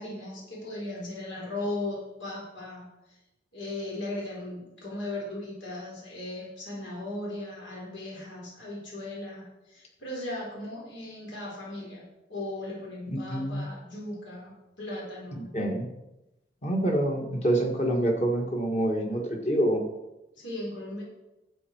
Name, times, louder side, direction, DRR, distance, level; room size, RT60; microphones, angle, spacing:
voice 1, 0.0-2.9 3.5-12.0 12.3-15.5 20.4-21.0, left 1 dB, 85° left, -4 dB, 4.1 m, -37 dB
voice 2, 13.1-13.7 15.5-15.9 16.6-19.8, right 1 dB, 35° left, 2 dB, 1.7 m, -26 dB
12.0 x 7.9 x 4.6 m, 0.94 s
head